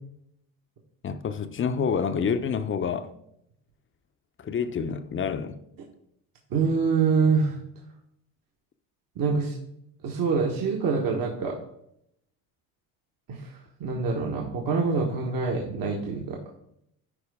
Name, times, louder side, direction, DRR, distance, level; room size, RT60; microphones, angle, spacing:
voice 1, 1.0-3.1 4.4-5.6, left 6 dB, 25° left, 0.7 m, -28 dB
voice 2, 6.5-7.6 9.1-9.6 10.0-11.6 13.3-16.4, right 5 dB, 50° right, 1.4 m, -25 dB
11.0 x 4.6 x 3.6 m
supercardioid pair, 85°, 45 cm